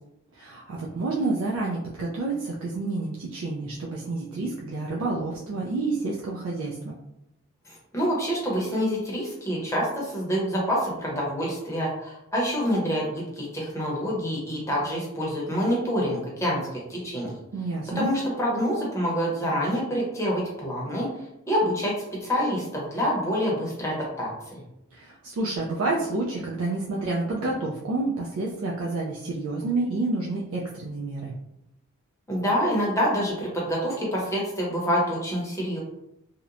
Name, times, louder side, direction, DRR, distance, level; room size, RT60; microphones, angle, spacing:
voice 1, 0.3-6.9 17.5-18.1 24.9-31.3, right 2 dB, 85° right, -3 dB, 0.4 m, -29 dB
voice 2, 7.7-17.3 17.9-21.1 21.5-21.9 22.2-24.6 32.3-35.8, equal, 15° left, -4 dB, 0.7 m, -27 dB
2.8 x 2.0 x 2.4 m, 0.84 s
head